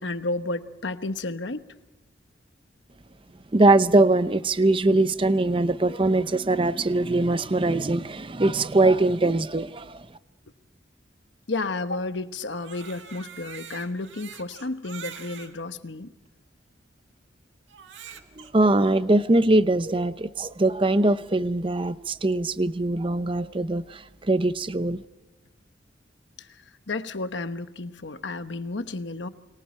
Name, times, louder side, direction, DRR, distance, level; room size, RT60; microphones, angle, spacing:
voice 1, 0.0-1.6 11.5-16.1 26.4-26.5 26.9-29.3, left 2 dB, 70° left, 1.1 m, -32 dB
voice 2, 3.5-10.1 18.4-25.0, right 2 dB, 25° right, 0.7 m, -22 dB
Crying sobbing, 12.4-15.5 16.3-16.4 17.7-18.5, right 8 dB, 75° right, 1.9 m, -43 dB
29.0 x 23.5 x 4.4 m
head